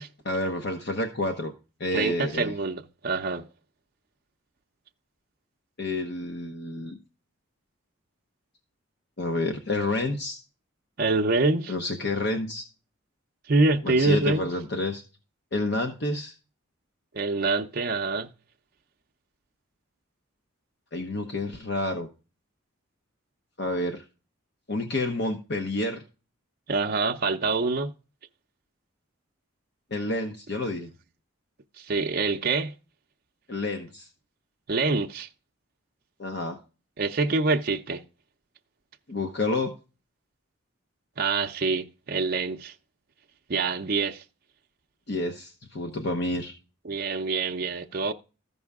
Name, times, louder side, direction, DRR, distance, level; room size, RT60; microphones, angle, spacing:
voice 1, 0.3-1.5 1.8-2.5 5.8-7.0 9.2-10.4 11.7-12.7 13.8-15.0 15.5-16.3 20.9-22.1 23.6-24.0 24.7-26.0 29.9-30.9 33.5-34.1 36.2-36.6 39.1-39.7 45.1-46.5, left 2 dB, 50° left, 0.9 m, -29 dB
voice 2, 1.9-3.5 11.0-11.7 13.5-14.5 17.1-18.3 26.7-27.9 31.8-32.7 34.7-35.3 37.0-38.0 41.2-42.7 43.5-44.2 46.8-48.1, right 3 dB, 45° right, 0.6 m, -25 dB
13.5 x 5.5 x 3.5 m
head